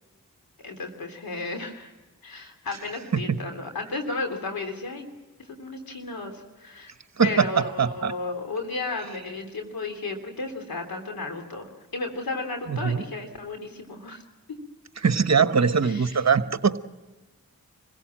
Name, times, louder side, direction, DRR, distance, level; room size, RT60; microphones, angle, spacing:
voice 1, 0.6-1.9 2.2-5.1 5.4-6.9 7.2-14.2 15.8-16.2, left 3 dB, 85° left, 3 dB, 3.2 m, -34 dB
voice 2, 7.2-8.1 12.7-13.0 15.0-16.8, right 6 dB, 50° right, 11 dB, 1.2 m, -22 dB
26.0 x 16.5 x 7.5 m, 1.2 s
cardioid pair, 40°, 35 cm